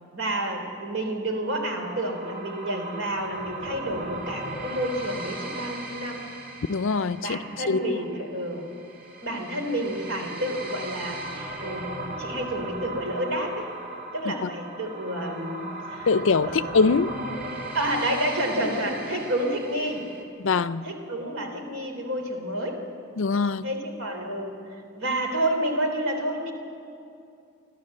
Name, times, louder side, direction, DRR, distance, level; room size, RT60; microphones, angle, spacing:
voice 1, 0.1-6.2 7.2-8.6 9.2-13.7 14.1-16.1 16.5-16.8 17.7-20.1 20.8-22.8 23.6-24.6 25.0-26.5, right 1 dB, 70° right, 3 dB, 3.4 m, -29 dB
sound 1, 1.6-20.2, right 2 dB, 40° right, 2.5 m, -38 dB
voice 2, 6.7-7.4 7.7-8.0 14.3-14.5 16.1-17.2 20.4-20.8 23.2-23.7, left 4 dB, 60° left, 14 dB, 0.5 m, -23 dB
29.5 x 12.5 x 7.7 m, 2.6 s
head